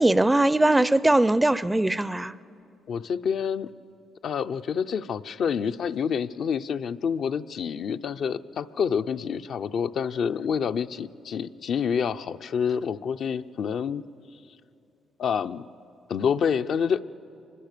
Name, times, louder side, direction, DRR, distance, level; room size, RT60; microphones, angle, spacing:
voice 1, 0.0-2.3, right 1 dB, 10° right, 17 dB, 0.4 m, -20 dB
voice 2, 2.9-3.7 4.2-14.0 15.2-15.6 16.1-17.0, left 7 dB, 65° left, 9 dB, 0.5 m, -27 dB
25.0 x 21.0 x 6.7 m, 2.7 s
cardioid pair, 90°, 0 cm